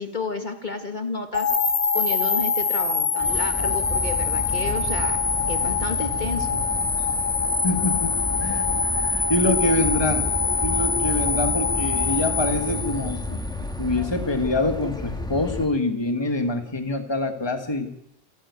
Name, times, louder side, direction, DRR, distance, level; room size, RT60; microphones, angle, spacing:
voice 1, 0.0-1.5 1.9-5.2 5.5-6.6 10.2-10.3, left 3 dB, 45° left, 6 dB, 1.8 m, -31 dB
sound 1, 1.3-13.5, left 5 dB, 70° left, 2.0 m, -24 dB
sound 2, 3.2-15.7, left 1 dB, 5° left, 1.9 m, -32 dB
voice 2, 7.6-8.6 9.0-10.3 10.6-13.4 13.8-17.9, left 2 dB, 25° left, 6 dB, 1.7 m, -25 dB
28.5 x 9.6 x 9.6 m, 0.76 s
omnidirectional pair, 1.1 m